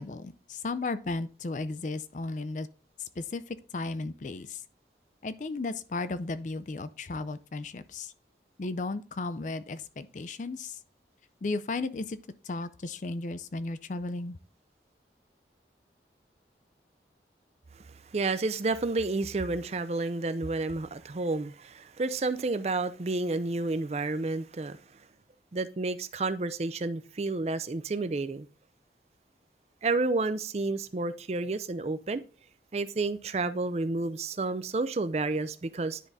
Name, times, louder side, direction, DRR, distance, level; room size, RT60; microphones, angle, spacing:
voice 1, 0.0-2.7 3.0-4.6 5.2-8.1 8.6-10.8 11.4-12.2 12.4-14.4, left 3 dB, 45° left, 0.4 m, -35 dB
voice 2, 18.1-24.8 25.5-28.5 29.8-32.2 32.7-36.0, right 3 dB, 35° right, 0.4 m, -30 dB
10.0 x 3.6 x 4.0 m
head